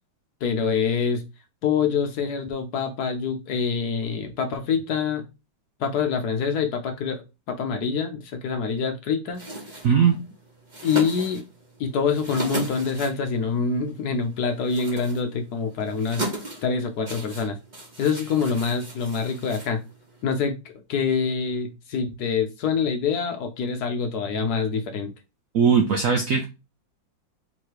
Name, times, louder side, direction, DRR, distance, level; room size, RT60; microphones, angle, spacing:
voice 1, 0.4-1.2 1.6-5.2 5.8-7.2 7.5-9.4 10.8-11.4 11.8-16.2 16.6-17.6 18.0-19.8 20.2-20.6 20.9-25.1, left 5 dB, 65° left, 1.1 m, -25 dB
sound 1, 9.3-20.2, right 1 dB, 30° right, 1.1 m, -37 dB
voice 2, 9.8-10.2 25.5-26.4, right 6 dB, 70° right, 0.8 m, -19 dB
3.7 x 3.2 x 4.4 m
omnidirectional pair, 2.1 m